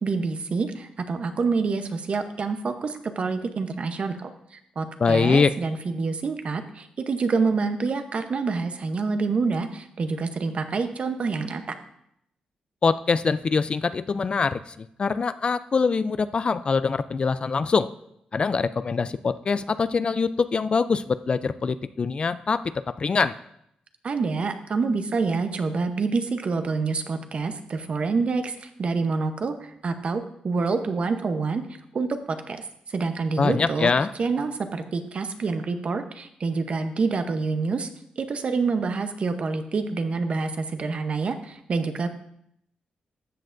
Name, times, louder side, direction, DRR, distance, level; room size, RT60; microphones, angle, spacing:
voice 1, 0.0-11.6 24.0-31.6 31.9-33.9 34.2-37.9 38.2-42.1, right 4 dB, 50° right, 8 dB, 0.8 m, -27 dB
voice 2, 5.0-5.5 12.8-17.9 18.3-23.4 33.4-34.1, left 5 dB, 40° left, 14 dB, 0.3 m, -24 dB
13.5 x 7.8 x 2.6 m, 0.74 s
cardioid pair, 85°, 3 cm